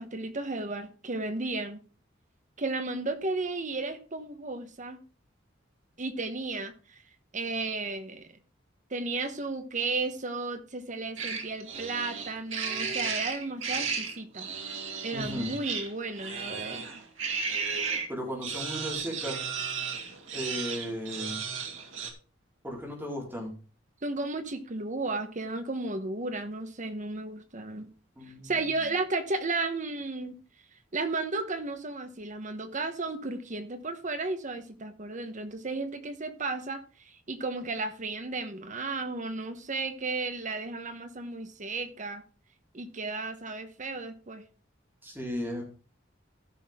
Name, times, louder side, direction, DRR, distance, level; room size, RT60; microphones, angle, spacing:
voice 1, 0.0-1.8 2.6-5.0 6.0-7.0 7.3-8.3 8.9-14.5 15.0-16.8 24.0-27.9 28.4-30.3 30.9-42.2 42.7-44.4, right 3 dB, 40° right, 9 dB, 1.1 m, -34 dB
sound 1, 11.2-18.1 18.4-22.1, right 5 dB, 85° right, 2.1 m, -34 dB
voice 2, 15.1-15.5 18.1-19.4 20.3-21.4 22.6-23.5 28.2-28.8 45.0-45.6, equal, 10° right, -3 dB, 4.1 m, -36 dB
14.5 x 6.2 x 3.7 m, 0.36 s
head